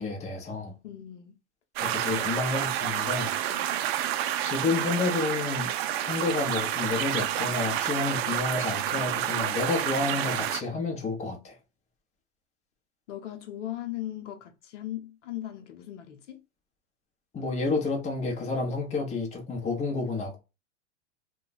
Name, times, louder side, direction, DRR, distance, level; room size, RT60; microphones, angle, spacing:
voice 1, 0.0-0.7 1.8-3.3 4.4-5.7 6.0-11.5 17.3-20.4, left 3 dB, 20° left, 0.9 m, -30 dB
voice 2, 0.8-1.4 2.1-2.3 3.5-3.9 13.1-16.4, left 13 dB, 80° left, 0.8 m, -38 dB
sound 1, 1.8-10.6, right 11 dB, 60° right, 0.4 m, -29 dB
2.3 x 2.3 x 3.9 m
hypercardioid pair, 120°, 36 cm